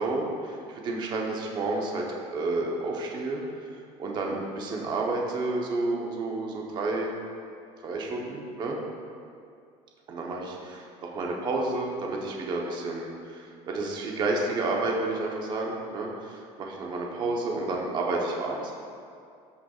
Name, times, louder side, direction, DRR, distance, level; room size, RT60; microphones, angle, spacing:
voice 1, 0.0-3.4 4.0-7.1 7.8-8.8 10.1-18.8, right 2 dB, 35° right, -1 dB, 1.0 m, -30 dB
13.0 x 5.8 x 2.4 m, 2.4 s
cardioid pair, 170°, 14 cm